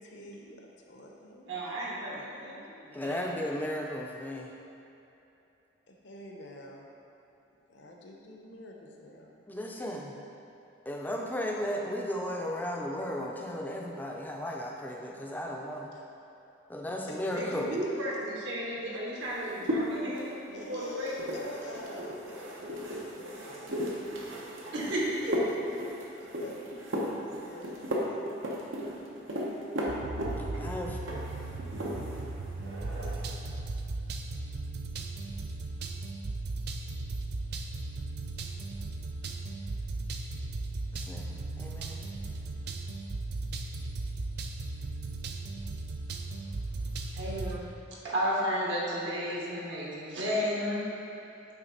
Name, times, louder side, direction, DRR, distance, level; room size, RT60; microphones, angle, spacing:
voice 1, 0.0-1.5 2.1-3.5 5.9-6.9 7.7-9.5 17.1-17.6 20.5-21.1 21.3-23.9 25.2-25.3 25.8-26.9 27.4-28.2, left 1 dB, 65° left, 0 dB, 0.8 m, -47 dB
voice 2, 1.5-2.5 2.8-3.2 17.2-21.1 24.3-24.4 24.7-25.4 47.1-47.7 48.0-50.8, equal, 70° right, -5 dB, 1.2 m, -33 dB
voice 3, 2.9-4.5 9.5-10.1 10.9-15.9 16.7-17.8 30.3-31.0 40.9-42.1, left 1 dB, 10° left, -1 dB, 0.4 m, -35 dB
sound 1, 19.2-32.3 32.6-33.3, equal, 85° right, 0.9 m, -36 dB
sound 2, 29.9-47.6, right 3 dB, 55° right, 0.4 m, -37 dB
8.8 x 3.4 x 4.2 m, 2.9 s
head